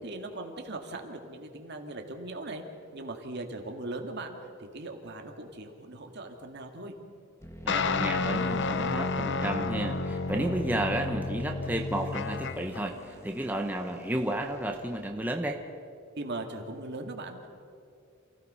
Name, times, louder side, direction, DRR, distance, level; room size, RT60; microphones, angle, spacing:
voice 1, 0.0-2.6 2.9-4.3 4.6-7.0 16.2-17.5, right 2 dB, 55° right, 4 dB, 2.1 m, -39 dB
sound 1, 7.4-15.4, equal, 15° left, 1.8 m, -48 dB
voice 2, 7.6-15.6, right 1 dB, 10° right, 3 dB, 1.0 m, -32 dB
sound 2, 7.7-12.8, left 4 dB, 60° left, 0.8 m, -31 dB
28.0 x 16.5 x 5.6 m, 2.4 s
head